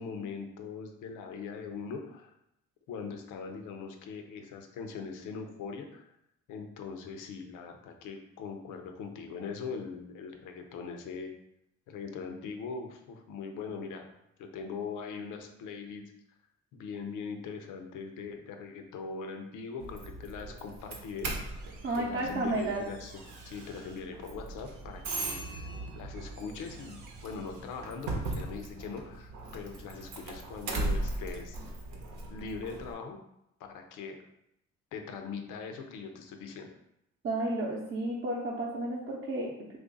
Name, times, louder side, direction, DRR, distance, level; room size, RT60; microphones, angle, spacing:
voice 1, 0.0-2.3 2.9-6.0 6.5-11.3 11.9-14.1 14.4-16.0 16.7-21.4 21.9-23.1 23.5-31.6 32.3-33.2 33.7-34.2 34.9-36.7, left 5 dB, 90° left, 5 dB, 0.6 m, -41 dB
Doorbell, 19.8-32.9, right 2 dB, 80° right, 0.8 m, -39 dB
voice 2, 21.8-22.8 37.2-39.5, right 2 dB, 40° right, -4 dB, 0.6 m, -32 dB
3.1 x 2.5 x 3.8 m, 0.81 s
cardioid pair, 90°, 30 cm